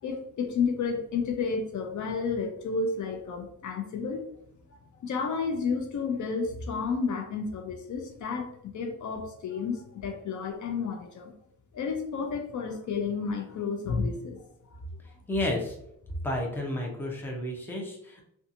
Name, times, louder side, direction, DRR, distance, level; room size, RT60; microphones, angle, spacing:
voice 1, 0.0-4.2 4.7-8.5 8.7-11.3 11.7-14.4 14.7-14.8, left 5 dB, 60° left, 4 dB, 0.5 m, -31 dB
voice 2, 15.3-15.8 16.2-18.2, left 1 dB, 5° left, -1 dB, 0.5 m, -31 dB
2.7 x 2.3 x 2.5 m, 0.73 s
wide cardioid pair, 145°, 34 cm